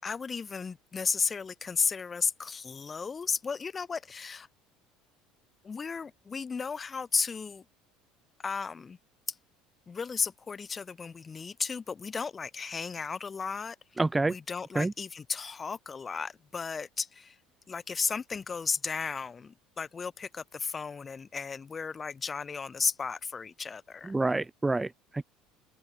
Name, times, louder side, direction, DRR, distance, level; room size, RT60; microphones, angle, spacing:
voice 1, 0.0-4.5 5.6-7.6 8.4-9.0 9.3-9.4 9.9-13.8 14.3-17.4 17.7-24.2, left 5 dB, 30° left, 4.4 m, -34 dB
voice 2, 14.0-14.3 14.7-14.9 24.1-25.2, right 2 dB, 15° right, 0.9 m, -28 dB
hypercardioid pair, 70°, 0 cm